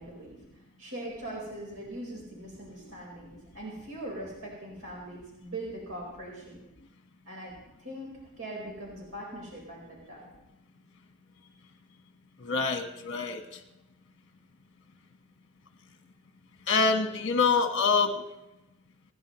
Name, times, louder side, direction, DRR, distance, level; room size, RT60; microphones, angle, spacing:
voice 1, 0.0-6.6 7.3-7.5 7.8-10.3, right 1 dB, 90° right, -3 dB, 4.5 m, -41 dB
voice 2, 12.4-13.6 16.7-18.2, left 4 dB, 55° left, 5 dB, 1.5 m, -26 dB
29.0 x 10.5 x 3.1 m, 0.95 s
head